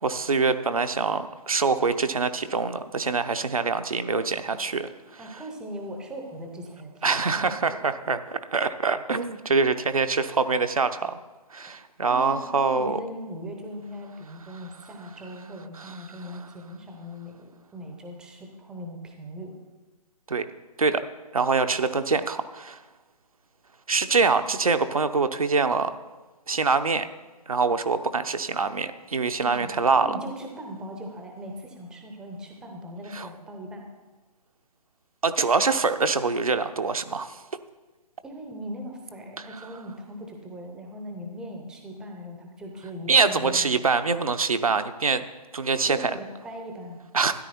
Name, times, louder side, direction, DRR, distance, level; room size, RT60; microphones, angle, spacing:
voice 1, 0.0-5.2 7.0-11.1 11.5-13.0 15.8-15.9 20.3-20.4 20.8-21.0 21.3-22.8 23.9-26.0 26.5-27.1 27.5-30.1 33.1-33.3 35.2-37.4 43.1-45.3 45.5-46.1 47.1-47.3, right 4 dB, 60° right, 9 dB, 0.8 m, -24 dB
voice 2, 5.2-7.0 7.4-7.8 12.1-19.5 29.4-33.9 38.2-43.7 45.9-47.0, equal, 5° right, 2 dB, 0.7 m, -39 dB
13.0 x 10.5 x 4.3 m, 1.2 s
figure-of-eight pair, 140°, 20 cm